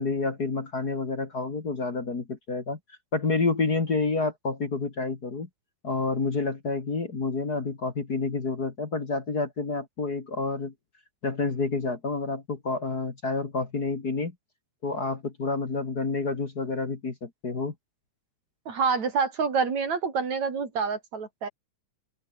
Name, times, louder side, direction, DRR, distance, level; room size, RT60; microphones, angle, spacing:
voice 1, 0.0-2.8 3.1-5.5 5.8-10.7 11.2-14.3 14.8-17.7, left 3 dB, 35° left, 2.6 m, -29 dB
voice 2, 18.7-21.5, right 5 dB, 65° right, 5.1 m, -27 dB
open air
omnidirectional pair, 3.4 m